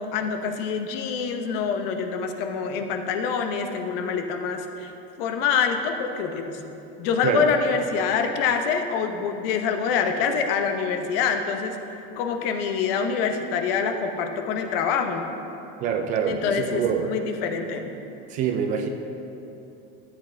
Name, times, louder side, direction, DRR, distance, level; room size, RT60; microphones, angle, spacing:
voice 1, 0.0-4.9 5.2-6.6 7.0-11.8 12.2-15.3 16.3-17.9, left 6 dB, 65° left, 5 dB, 0.9 m, -26 dB
voice 2, 15.8-17.1 18.3-18.9, right 7 dB, 25° right, 5 dB, 0.3 m, -25 dB
13.0 x 8.0 x 3.4 m, 2.9 s
cardioid pair, 170°, 30 cm